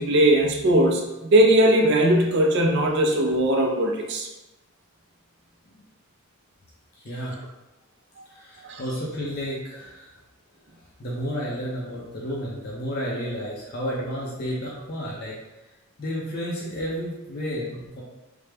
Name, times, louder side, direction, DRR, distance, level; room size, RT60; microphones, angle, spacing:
voice 1, 0.0-4.3 8.6-8.8, right 1 dB, 50° right, 1 dB, 0.4 m, -19 dB
voice 2, 7.0-7.4 8.3-10.1 11.0-15.3 16.0-18.0, equal, 45° left, -5 dB, 0.5 m, -31 dB
3.3 x 2.0 x 3.2 m, 0.98 s
head